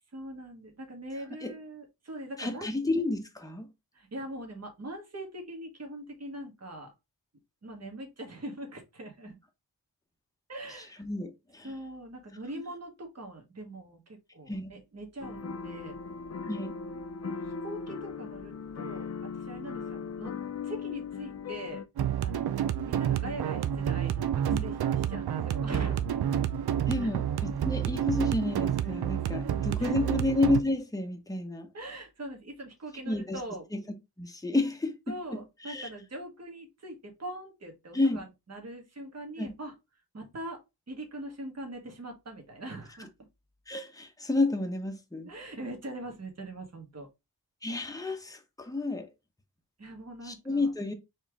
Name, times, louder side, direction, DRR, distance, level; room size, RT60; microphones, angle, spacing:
voice 1, 0.1-2.7 3.9-6.9 7.6-9.4 10.5-11.0 11.6-16.0 17.2-20.3 20.6-21.8 22.2-24.8 25.1-26.1 27.0-27.1 28.9-29.0 29.3-30.0 31.7-33.6 35.1-39.7 40.1-40.6 40.9-43.1 45.2-47.1 49.8-50.7, right 1 dB, 45° right, 1.6 m, -42 dB
voice 2, 2.4-3.7 10.8-11.7 14.5-14.7 16.4-16.8 22.9-23.1 24.5-24.6 26.9-31.7 33.0-33.4 33.7-33.8 34.2-35.9 37.9-38.2 39.4-39.5 43.7-45.3 47.6-49.1 50.2-50.9, left 2 dB, 10° left, 0.9 m, -31 dB
sound 1, 15.2-21.9, left 5 dB, 40° left, 0.5 m, -38 dB
sound 2, 22.0-30.6, right 10 dB, 85° right, 0.6 m, -29 dB
4.4 x 3.2 x 3.5 m
wide cardioid pair, 95°, 37 cm